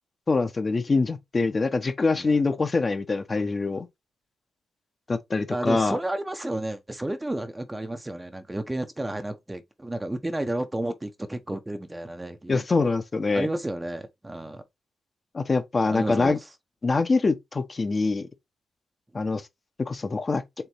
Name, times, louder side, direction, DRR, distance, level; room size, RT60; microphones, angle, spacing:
voice 1, 0.3-3.9 5.1-6.0 12.5-13.5 15.3-16.4 16.8-18.3 19.1-19.4 19.8-20.4, left 3 dB, 30° left, 0.8 m, -24 dB
voice 2, 5.5-12.6 13.3-14.6 15.9-16.5, right 1 dB, 15° right, 0.8 m, -32 dB
4.4 x 3.5 x 3.3 m
cardioid pair, 100°, 0 cm